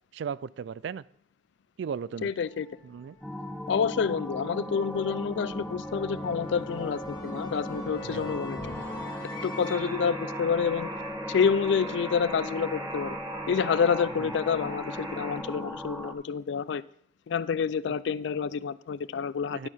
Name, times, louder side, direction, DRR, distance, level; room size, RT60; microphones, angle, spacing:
voice 1, 0.1-1.0 1.8-2.3 2.8-3.2 8.0-8.3 14.2-14.3 17.9-18.0 19.5-19.7, right 7 dB, 70° right, 0.3 m, -36 dB
voice 2, 2.2-2.7 3.7-8.7 9.4-10.9 11.3-13.2 13.5-16.8 17.3-19.7, left 6 dB, 70° left, 0.3 m, -28 dB
sound 1, 2.4-11.5, left 2 dB, 50° left, 2.4 m, -45 dB
sound 2, 3.2-16.1, equal, ahead, 0.6 m, -37 dB
Alarm, 9.6-15.4, right 2 dB, 25° right, 1.2 m, -40 dB
11.0 x 4.6 x 5.7 m
head